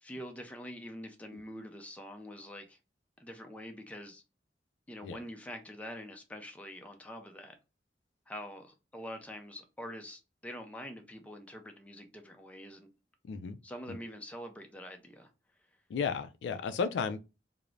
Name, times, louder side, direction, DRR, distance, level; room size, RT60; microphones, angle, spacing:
voice 1, 0.0-2.8 3.2-4.2 4.9-7.5 8.3-12.9 13.6-15.3, equal, 10° left, 0.4 m, -45 dB
voice 2, 13.2-13.6 13.9-14.0 15.9-17.2, left 5 dB, 85° left, 0.3 m, -34 dB
2.4 x 2.0 x 3.0 m
head